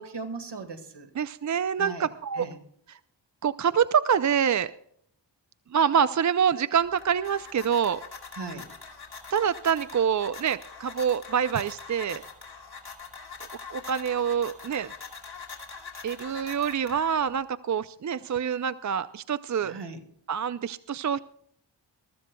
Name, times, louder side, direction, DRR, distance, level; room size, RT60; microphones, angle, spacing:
voice 1, 0.0-1.1 1.8-2.1 2.3-2.6 8.3-8.7 19.6-20.0, right 4 dB, 65° right, 8 dB, 1.9 m, -38 dB
voice 2, 1.2-2.5 2.9-3.0 3.4-4.7 5.7-8.0 9.3-12.2 13.7-14.9 16.0-19.7 20.3-21.2, right 7 dB, 40° right, 15 dB, 0.5 m, -26 dB
sound 1, 6.8-17.4, left 5 dB, 55° left, 2.7 m, -44 dB
22.5 x 14.0 x 2.3 m, 0.68 s
cardioid pair, 60°, 44 cm